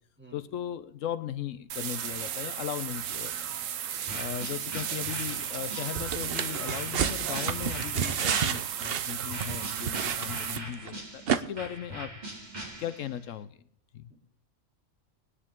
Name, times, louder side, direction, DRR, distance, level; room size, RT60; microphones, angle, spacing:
voice 1, 0.3-3.3 4.1-12.1 12.8-13.5 13.9-14.1, left 10 dB, 80° left, 13 dB, 1.1 m, -37 dB
sound 1, 1.7-10.6, right 9 dB, 90° right, 1.1 m, -35 dB
voice 2, 3.9-4.2 14.1-14.2, right 1 dB, 10° right, -1 dB, 3.0 m, -52 dB
sound 2, 4.1-8.9 9.3-13.3, right 1 dB, 35° right, 3.0 m, -42 dB
sound 3, 6.0-10.9 11.3-11.4, right 8 dB, 55° right, 0.9 m, -31 dB
21.0 x 9.8 x 3.6 m, 0.67 s
omnidirectional pair, 1.3 m